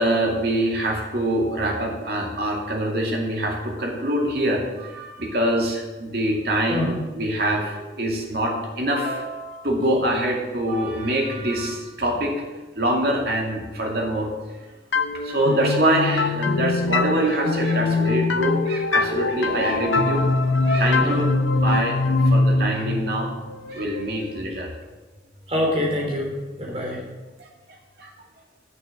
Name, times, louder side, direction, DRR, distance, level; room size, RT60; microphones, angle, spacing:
voice 1, 0.0-12.4 12.8-14.3 15.2-20.2 20.7-21.3 21.5-23.3 23.7-24.7 26.6-26.8 27.4-27.5 28.0-28.1, right 1 dB, 55° right, -1 dB, 2.3 m, -24 dB
sound 1, 14.9-24.5, left 3 dB, 80° left, 0.8 m, -23 dB
voice 2, 25.5-27.0, left 1 dB, 30° right, -2 dB, 3.2 m, -25 dB
11.0 x 6.6 x 6.6 m, 1.2 s
head